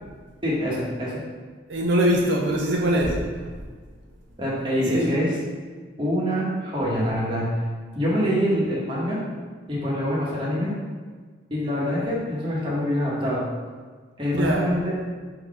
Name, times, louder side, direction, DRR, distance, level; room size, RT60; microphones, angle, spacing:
voice 1, 0.4-1.2 4.4-5.3 6.0-7.5 7.9-9.2 9.7-10.7 11.5-13.5 14.2-14.9, equal, 25° right, -6 dB, 1.0 m, -25 dB
voice 2, 1.7-3.2 4.9-5.1 14.3-14.7, right 1 dB, 75° right, -1 dB, 0.6 m, -22 dB
3.7 x 2.8 x 4.7 m, 1.5 s
head